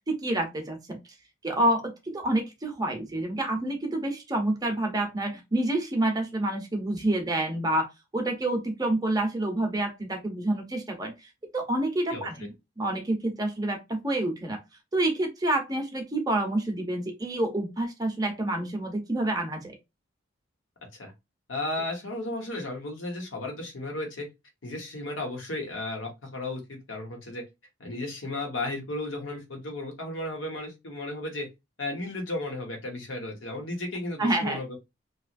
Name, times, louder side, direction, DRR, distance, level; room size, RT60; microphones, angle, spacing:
voice 1, 0.1-1.0 1.4-7.9 8.1-11.1 11.5-12.5 12.8-14.6 14.9-19.8 34.2-34.6, right 1 dB, 20° right, 3 dB, 0.7 m, -28 dB
voice 2, 12.1-12.5 21.0-21.1 21.5-24.3 24.6-27.4 27.8-31.5 31.8-34.8, left 2 dB, 80° left, 2 dB, 1.1 m, -34 dB
2.9 x 2.3 x 2.5 m, 0.22 s
head